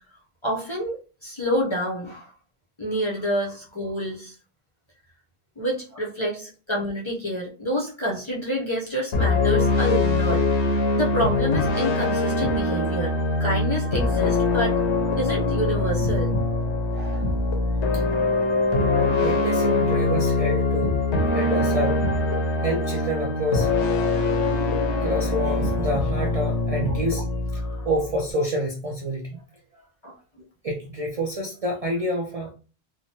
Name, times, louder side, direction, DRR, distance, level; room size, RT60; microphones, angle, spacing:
voice 1, 0.4-2.3 2.8-4.3 5.6-14.8 15.2-16.3 16.9-17.2 30.0-30.1, equal, 35° left, -4 dB, 0.5 m, -28 dB
sound 1, 9.1-28.3, left 2 dB, 80° left, 0.9 m, -23 dB
voice 2, 17.9-18.3 19.2-21.0 21.3-22.1 22.6-23.7 24.7-27.3 27.5-29.4 30.6-32.5, right 1 dB, 50° right, 0 dB, 0.4 m, -28 dB
3.1 x 2.1 x 2.7 m, 0.36 s
omnidirectional pair, 1.1 m